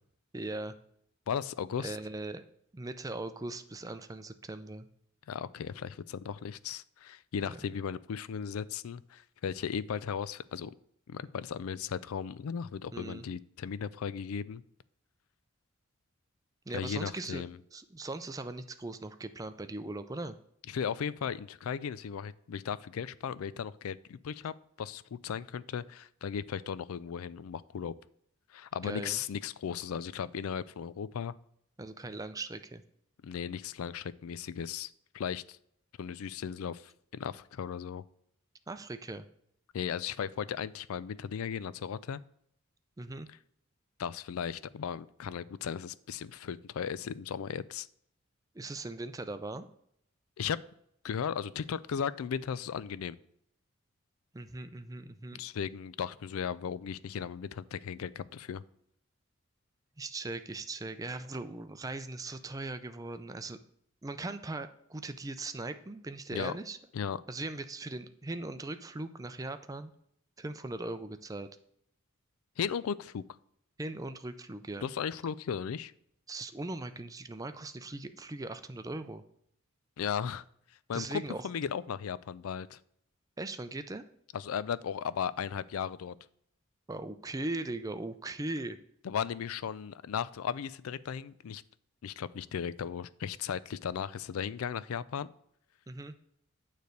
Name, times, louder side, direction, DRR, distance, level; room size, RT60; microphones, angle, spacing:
voice 1, 0.3-0.7 1.8-2.4 2.7-4.9 7.4-7.6 12.9-13.3 16.7-17.4 17.7-20.3 28.8-29.2 31.8-32.8 38.7-39.2 43.0-43.3 48.5-49.7 54.3-55.4 60.0-63.6 64.0-66.8 67.3-69.9 70.4-71.5 73.8-74.8 76.3-79.2 80.9-81.5 83.4-84.0 86.9-88.8 95.9-96.1, right 2 dB, 15° right, 10 dB, 0.4 m, -39 dB
voice 2, 1.3-2.0 5.3-10.7 11.1-14.6 16.7-17.6 20.7-27.9 28.5-31.3 33.2-35.6 36.0-38.0 39.7-42.2 44.0-47.9 50.4-50.6 51.0-53.2 55.3-58.6 66.3-66.5 66.9-67.2 72.6-73.2 74.8-75.9 80.0-80.4 80.9-82.8 84.3-86.2 89.0-91.6 92.0-95.3, left 7 dB, 90° left, 18 dB, 0.4 m, -36 dB
9.2 x 3.3 x 6.5 m, 0.71 s
head